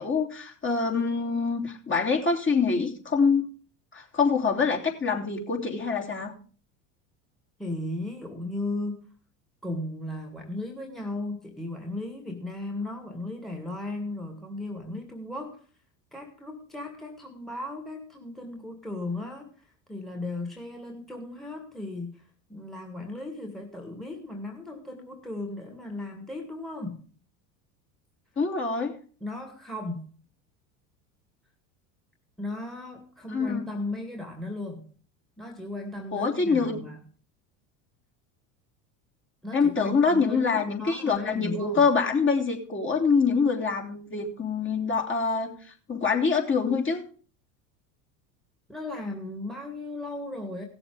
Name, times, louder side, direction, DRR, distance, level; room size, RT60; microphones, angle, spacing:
voice 1, 0.0-3.5 3.9-6.3 28.4-28.9 33.3-33.7 36.1-36.8 39.5-45.6 45.9-47.0, left 5 dB, 30° left, 1 dB, 3.2 m, -25 dB
voice 2, 7.6-9.0 9.6-15.6 16.1-27.1 29.2-30.1 32.4-34.9 35.4-37.0 39.4-41.9 48.7-50.6, left 2 dB, ahead, 2 dB, 2.2 m, -36 dB
16.5 x 7.1 x 5.0 m, 0.41 s
hypercardioid pair, 90°, 42 cm